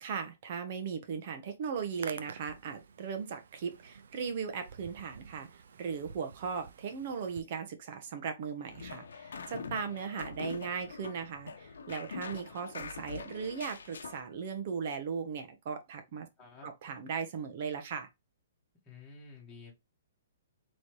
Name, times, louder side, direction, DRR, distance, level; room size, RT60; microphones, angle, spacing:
voice 1, 0.0-16.3 16.6-18.1, right 6 dB, 45° right, 1.0 m, -38 dB
Hands, 1.7-7.4, right 6 dB, 75° right, 0.5 m, -51 dB
sound 1, 8.7-14.2, left 5 dB, 85° left, 0.8 m, -44 dB
voice 2, 9.7-10.0 16.4-16.7 18.8-19.7, left 4 dB, 15° left, 1.7 m, -52 dB
4.0 x 3.2 x 3.1 m
hypercardioid pair, 160°, 0 cm